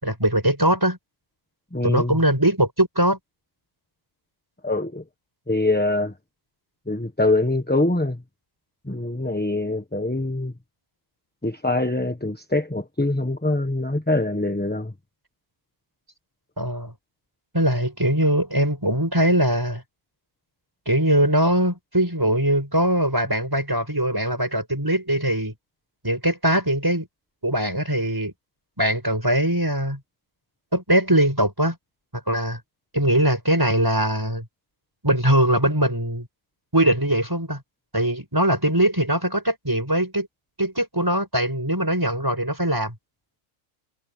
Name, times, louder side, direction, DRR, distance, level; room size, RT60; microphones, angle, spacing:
voice 1, 0.0-1.0 1.8-3.2 16.6-16.9 17.5-19.8 20.9-25.5 26.0-27.1 27.4-28.3 28.8-30.0 30.7-31.8 32.3-32.6 32.9-34.4 35.0-36.3 36.7-37.6 37.9-40.3 40.6-42.9, right 1 dB, 15° right, 5.3 m, -21 dB
voice 2, 1.7-2.2 4.6-5.0 5.5-6.1 6.9-8.2 8.8-10.5 11.4-14.9, left 2 dB, 10° left, 1.1 m, -24 dB
omnidirectional pair, 1.4 m